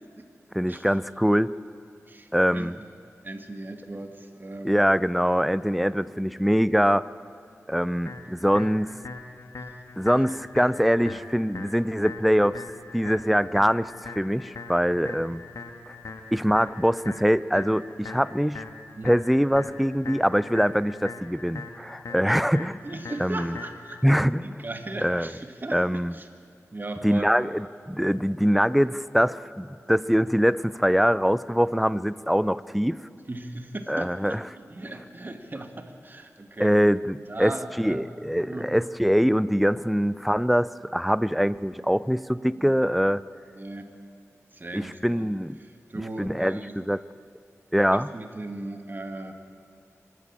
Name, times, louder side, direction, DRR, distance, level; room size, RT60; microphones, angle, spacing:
voice 1, 0.5-1.5 2.3-2.8 4.6-7.0 7.7-9.0 10.0-12.6 12.9-15.4 16.3-18.7 19.0-22.8 23.2-23.5 24.0-24.4 25.0-25.3 25.7-26.2 27.0-33.0 33.9-34.4 36.6-43.2 44.7-45.6 46.2-47.0 47.7-48.1, equal, ahead, 17 dB, 0.5 m, -23 dB
voice 2, 2.1-2.7 3.2-4.8 15.1-15.3 19.0-19.1 22.2-22.4 22.8-26.3 26.7-27.3 33.3-36.8 37.3-38.2 38.5-38.7 42.6-42.7 43.5-43.9 44.5-45.3 45.6-46.8 47.9-49.3, right 2 dB, 35° right, 6 dB, 1.9 m, -38 dB
sound 1, 8.1-24.0, left 4 dB, 80° left, 1.5 m, -41 dB
24.5 x 12.5 x 8.9 m, 2.4 s
wide cardioid pair, 75°, 5 cm